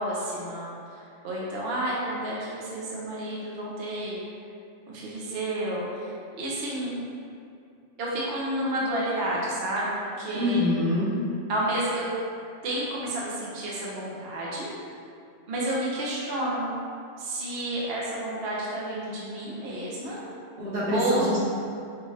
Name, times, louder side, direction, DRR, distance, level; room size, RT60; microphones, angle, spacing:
voice 1, 0.0-4.2 4.9-6.1 6.4-7.0 8.0-10.7 11.5-12.1 12.6-14.7 15.5-16.7 17.2-20.2 20.9-21.3, right 1 dB, 55° right, -5 dB, 0.9 m, -30 dB
voice 2, 10.3-11.1 20.6-21.4, left 1 dB, 85° right, -9 dB, 1.6 m, -25 dB
5.6 x 2.7 x 3.1 m, 2.5 s
omnidirectional pair, 1.3 m